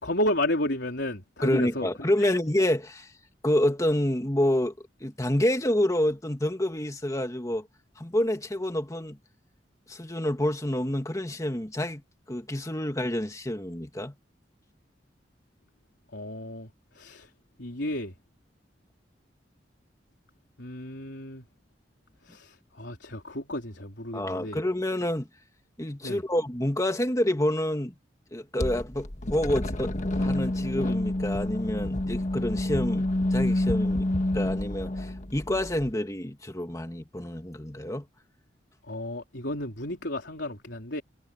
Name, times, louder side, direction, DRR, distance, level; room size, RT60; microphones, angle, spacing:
voice 1, 0.0-1.9 2.2-2.3 16.1-16.7 16.9-17.3 17.6-18.1 20.6-21.4 22.2-24.6 26.0-26.2 38.9-41.0, left 1 dB, 80° left, 3.8 m, -32 dB
voice 2, 1.4-3.1 3.4-4.7 5.0-7.7 8.0-9.2 9.9-12.0 12.3-14.1 24.1-25.3 25.8-27.9 28.3-34.1 34.3-38.0, left 1 dB, 20° left, 2.2 m, -28 dB
sound 1, 28.6-35.9, left 1 dB, 45° left, 1.5 m, -28 dB
head